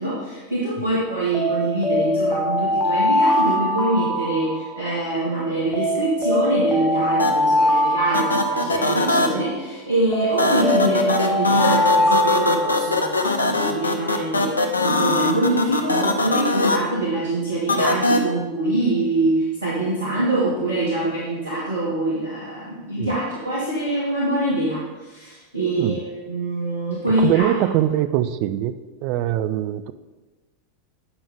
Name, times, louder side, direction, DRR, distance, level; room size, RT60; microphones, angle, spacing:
voice 1, 0.0-26.0 26.3-27.5, right 1 dB, 75° right, -7 dB, 1.5 m, -24 dB
Alarm, 1.3-5.0 5.7-9.4 10.1-13.3, left 1 dB, 5° right, 1.0 m, -22 dB
sound 1, 7.2-7.3 8.1-9.3 10.4-16.8 17.7-18.2, left 2 dB, 80° left, 0.6 m, -21 dB
voice 2, 27.2-28.7 29.0-29.9, right 12 dB, 45° right, 11 dB, 0.4 m, -22 dB
8.7 x 5.3 x 3.5 m, 1.2 s
figure-of-eight pair, 85°, 0 cm